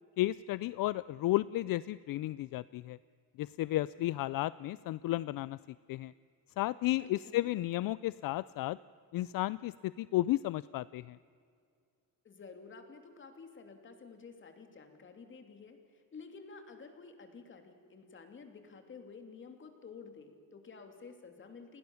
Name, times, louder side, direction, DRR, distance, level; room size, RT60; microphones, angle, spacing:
voice 1, 0.2-3.0 3.4-5.6 5.9-6.1 6.6-8.8 9.1-11.2, left 16 dB, 70° left, 18 dB, 0.5 m, -33 dB
voice 2, 7.0-7.5 12.2-21.8, left 5 dB, 35° left, 6 dB, 2.9 m, -51 dB
29.5 x 20.5 x 7.1 m, 2.3 s
cardioid pair, 170°, 35 cm